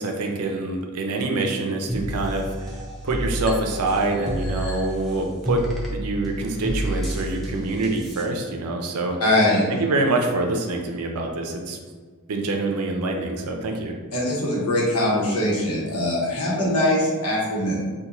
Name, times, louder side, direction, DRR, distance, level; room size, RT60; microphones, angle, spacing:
voice 1, 0.0-2.8 3.0-5.6 5.9-9.2 9.7-11.8 12.3-14.0, right 2 dB, 85° right, 3 dB, 0.5 m, -25 dB
sound 1, 1.9-8.2, equal, ahead, 0.5 m, -30 dB
voice 2, 9.2-9.6 14.1-17.8, left 1 dB, 90° left, -6 dB, 1.0 m, -22 dB
2.9 x 2.3 x 3.7 m, 1.5 s
head